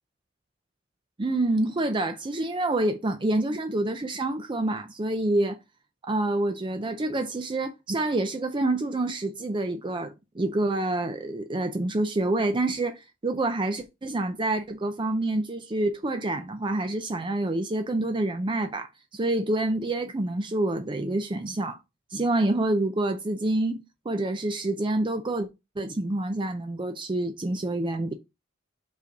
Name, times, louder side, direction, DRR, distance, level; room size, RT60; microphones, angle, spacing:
voice 1, 1.2-5.6 6.0-21.8 22.1-25.5 25.8-28.1, right 2 dB, 25° right, 0.5 m, -27 dB
5.4 x 4.0 x 4.6 m
head